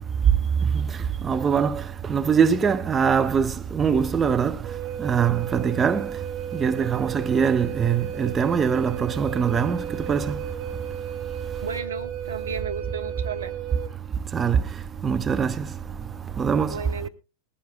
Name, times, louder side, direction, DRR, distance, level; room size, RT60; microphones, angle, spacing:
voice 1, 1.3-1.7 2.1-4.5 5.0-6.1 6.6-9.8 10.1-10.2 14.3-14.6 15.0-15.5 16.4-16.7, right 7 dB, 20° right, 0.8 m, -22 dB
Wind instrument woodwind instrument, 4.6-13.9, right 9 dB, 45° right, 3.0 m, -35 dB
voice 2, 11.6-13.5 16.7-17.1, right 5 dB, 70° right, 1.5 m, -33 dB
20.0 x 15.5 x 2.2 m
figure-of-eight pair, 90°, 0 cm